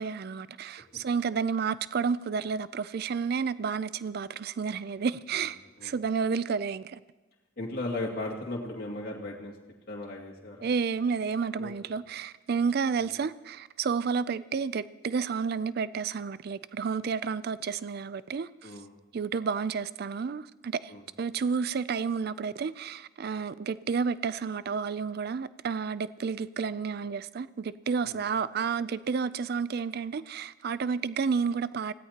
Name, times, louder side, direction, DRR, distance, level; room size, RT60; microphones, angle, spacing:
voice 1, 0.0-7.0 10.6-18.7 19.1-20.9 21.2-31.9, right 5 dB, 50° right, 0.4 m, -31 dB
voice 2, 7.6-9.6 9.9-10.7 11.6-11.7 13.0-13.1 18.6-18.9 20.9-21.0 28.0-28.2, left 2 dB, 50° left, 2.4 m, -36 dB
24.5 x 16.5 x 2.9 m
head